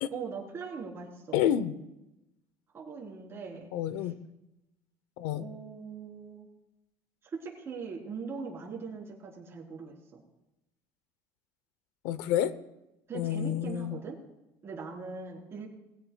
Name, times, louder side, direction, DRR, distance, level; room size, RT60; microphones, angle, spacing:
voice 1, 0.1-1.4 2.7-3.7 5.4-6.5 7.4-10.2 13.1-14.2 14.6-15.7, right 5 dB, 30° right, -2 dB, 3.8 m, -41 dB
voice 2, 1.3-1.8 3.7-4.1 5.2-5.4 12.0-12.5 13.1-14.0, left 10 dB, 90° left, 14 dB, 0.8 m, -29 dB
21.5 x 15.5 x 2.3 m, 0.94 s
cardioid pair, 145°, 9 cm